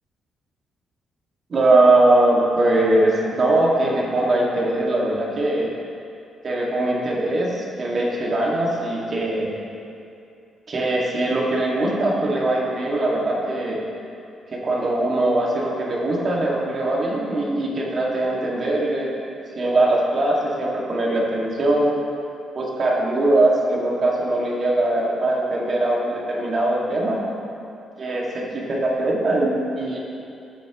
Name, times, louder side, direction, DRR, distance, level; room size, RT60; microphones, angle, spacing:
voice 1, 1.5-5.7 6.4-9.5 10.7-13.8 14.5-19.1 19.6-21.9 22.6-27.2 28.0-30.0, right 2 dB, 40° right, -3 dB, 2.0 m, -21 dB
14.5 x 8.7 x 3.1 m, 2.6 s
cardioid pair, 125°, 0 cm